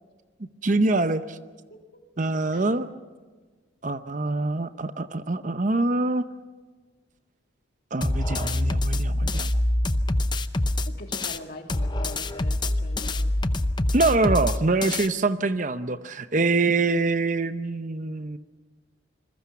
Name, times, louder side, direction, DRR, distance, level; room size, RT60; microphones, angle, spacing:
voice 1, 0.6-1.4 2.2-2.9 3.8-6.3 7.9-9.5 13.9-18.4, right 3 dB, 40° right, 11 dB, 0.7 m, -24 dB
voice 2, 1.7-2.0 2.5-2.7 10.9-13.3, left 1 dB, 50° left, 3 dB, 2.8 m, -42 dB
sound 1, 8.0-11.4 11.7-15.1, left 1 dB, 20° left, 0.7 m, -25 dB
27.5 x 21.5 x 5.9 m, 1.4 s
head